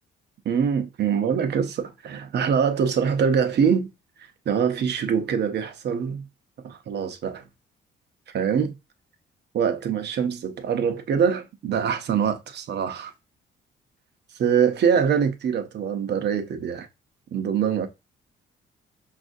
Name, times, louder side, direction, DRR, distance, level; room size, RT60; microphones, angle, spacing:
voice 1, 0.4-3.9 4.5-6.2 6.6-7.4 8.3-8.7 9.5-13.1 14.4-16.9 17.3-17.9, right 7 dB, 60° right, 0.7 m, -24 dB
5.4 x 2.5 x 2.6 m
cardioid pair, 90°, 20 cm